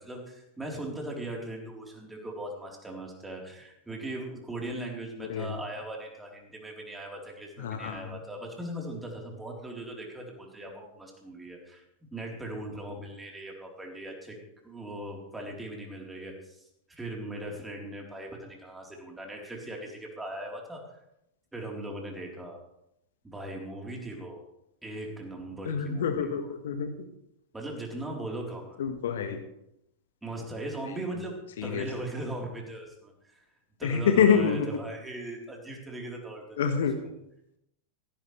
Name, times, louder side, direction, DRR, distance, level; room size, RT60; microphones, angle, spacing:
voice 1, 0.0-11.8 12.1-14.4 14.6-16.6 16.9-20.8 21.5-22.6 23.2-24.4 24.8-26.3 27.5-28.8 30.2-31.4 31.6-33.4 33.8-36.8, right 1 dB, 10° right, 0 dB, 4.0 m, -39 dB
voice 2, 5.2-5.6 7.6-8.1 25.6-26.9 28.8-29.4 31.6-31.9 33.8-34.8 36.6-37.0, left 7 dB, 60° left, 7 dB, 1.5 m, -26 dB
16.5 x 15.5 x 3.4 m, 0.82 s
figure-of-eight pair, 90°, 0 cm